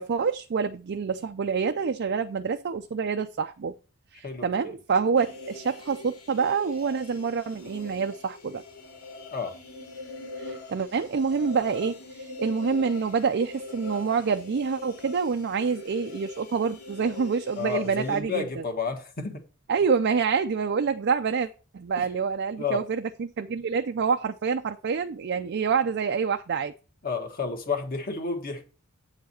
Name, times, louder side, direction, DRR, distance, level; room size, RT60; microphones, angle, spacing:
voice 1, 0.0-3.7 4.1-8.6 10.4-18.6 19.7-26.7, right 5 dB, 50° right, 0.4 m, -27 dB
voice 2, 4.2-4.8 9.3-9.5 17.6-19.4 22.0-22.1 22.6-22.8 27.0-28.7, left 5 dB, 40° left, 1.5 m, -31 dB
sound 1, 5.1-18.2, left 3 dB, 80° left, 2.4 m, -42 dB
8.5 x 4.7 x 4.3 m
head